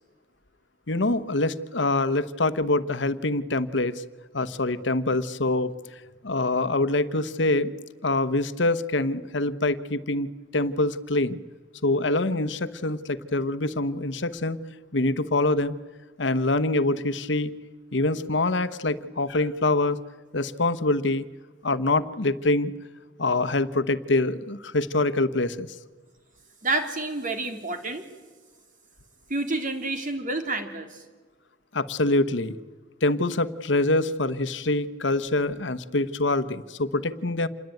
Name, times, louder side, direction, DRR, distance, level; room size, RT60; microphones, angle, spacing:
voice 1, 0.9-4.0 4.3-5.7 6.2-7.7 8.0-10.3 10.5-11.4 11.8-14.6 14.9-15.8 16.2-17.5 17.9-20.0 20.3-21.2 21.6-22.7 23.2-25.7 31.7-32.6 33.0-37.5, left 2 dB, 70° left, 12 dB, 1.1 m, -25 dB
voice 2, 26.6-28.0 29.3-31.0, right 2 dB, 45° right, 6 dB, 3.0 m, -29 dB
27.5 x 21.5 x 9.2 m, 1.3 s
head